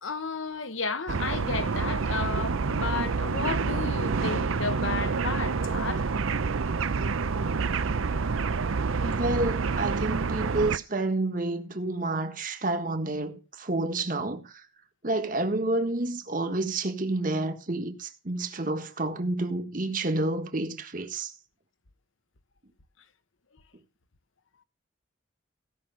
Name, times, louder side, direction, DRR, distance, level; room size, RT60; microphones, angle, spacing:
voice 1, 0.0-6.0, left 4 dB, 75° left, 1.2 m, -33 dB
sound 1, 1.1-10.8, right 4 dB, 85° right, 0.6 m, -28 dB
voice 2, 9.0-14.4 15.0-21.3, right 2 dB, 40° right, 1.5 m, -29 dB
16.5 x 6.2 x 5.5 m
head